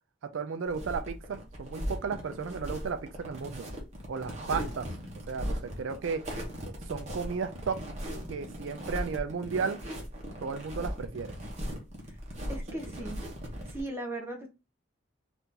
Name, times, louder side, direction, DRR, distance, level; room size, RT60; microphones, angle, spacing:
voice 1, 0.2-3.7 4.1-4.9 5.3-6.3 6.6-7.8 8.3-9.8 10.4-11.3 12.5-12.6 13.0-13.1, right 5 dB, 70° right, 0.4 m, -34 dB
sound 1, 0.7-13.8, equal, 35° right, 0.9 m, -38 dB
voice 2, 12.5-13.2 13.7-14.5, right 1 dB, 10° right, 0.6 m, -37 dB
2.8 x 2.5 x 3.6 m
head